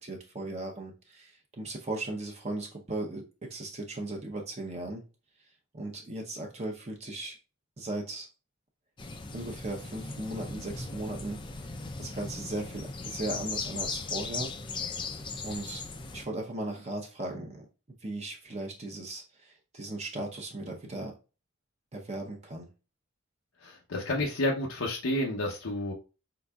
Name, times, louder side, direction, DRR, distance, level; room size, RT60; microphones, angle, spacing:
voice 1, 0.0-5.0 5.7-7.4 7.8-8.3 9.3-11.4 12.0-14.5 15.4-15.8 16.1-17.7 18.0-21.1 21.9-22.7, right 2 dB, 30° right, 1 dB, 0.7 m, -37 dB
sound 1, 9.0-16.2, left 4 dB, 25° left, 0.4 m, -38 dB
voice 2, 23.6-25.9, left 1 dB, 85° left, -1 dB, 0.7 m, -30 dB
4.7 x 3.9 x 2.3 m, 0.32 s
head